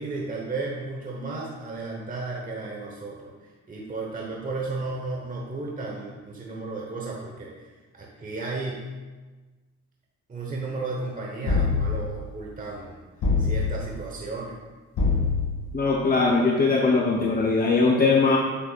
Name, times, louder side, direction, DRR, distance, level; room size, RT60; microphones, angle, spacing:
voice 1, 0.0-3.3 3.7-7.7 7.9-8.8 10.3-13.0 13.4-14.5, right 3 dB, 25° right, -2 dB, 1.1 m, -34 dB
sound 1, 11.5-12.2 13.2-14.0 15.0-15.7, left 4 dB, 75° left, 1.8 m, -24 dB
voice 2, 15.7-18.4, left 3 dB, 30° left, -1 dB, 0.7 m, -20 dB
7.7 x 6.8 x 2.4 m, 1.3 s
cardioid pair, 90°, 30 cm